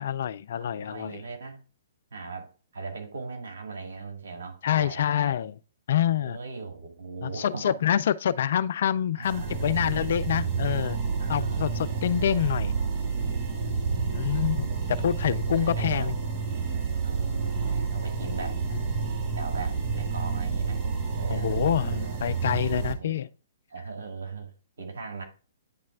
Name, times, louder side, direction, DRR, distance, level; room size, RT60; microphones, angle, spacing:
voice 1, 0.0-1.2 4.6-5.5 5.9-6.4 7.2-11.0 11.3-12.7 13.9-16.2 18.7-18.8 21.3-23.3, left 10 dB, 60° left, 0.4 m, -27 dB
voice 2, 0.5-1.6 2.1-5.3 6.1-7.8 9.2-9.7 11.2-12.1 13.9-14.4 15.6-16.1 17.0-18.6 19.3-20.9 21.2-22.2 22.8-23.2 23.7-25.2, right 4 dB, 70° right, 1.9 m, -39 dB
sound 1, 9.2-22.9, right 5 dB, 35° right, 1.4 m, -29 dB
9.5 x 3.2 x 3.5 m
hypercardioid pair, 125°, 0 cm